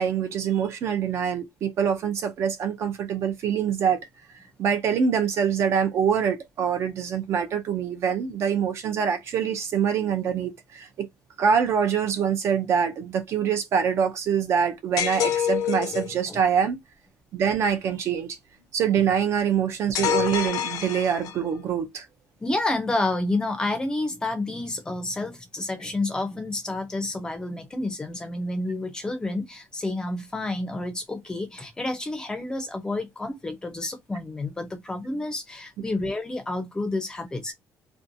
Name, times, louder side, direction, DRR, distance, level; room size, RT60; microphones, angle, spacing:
voice 1, 0.0-4.0 4.6-11.1 11.4-16.8 17.3-18.4 18.7-22.1, right 7 dB, 50° right, 0.5 m, -25 dB
sound 1, 15.0-16.1 19.9-21.5, left 9 dB, 80° left, 0.6 m, -26 dB
voice 2, 22.4-37.5, left 2 dB, 10° left, 0.5 m, -29 dB
2.6 x 2.2 x 2.6 m
cardioid pair, 180°, 6 cm